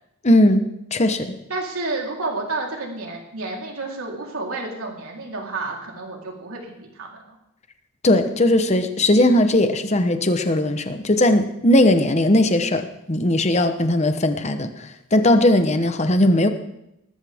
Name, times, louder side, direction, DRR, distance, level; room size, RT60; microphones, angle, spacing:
voice 1, 0.2-1.3 8.0-16.5, left 1 dB, 30° left, 8 dB, 1.0 m, -18 dB
voice 2, 1.5-7.2, right 3 dB, 80° right, -1 dB, 3.8 m, -30 dB
19.0 x 14.0 x 3.6 m, 0.84 s
head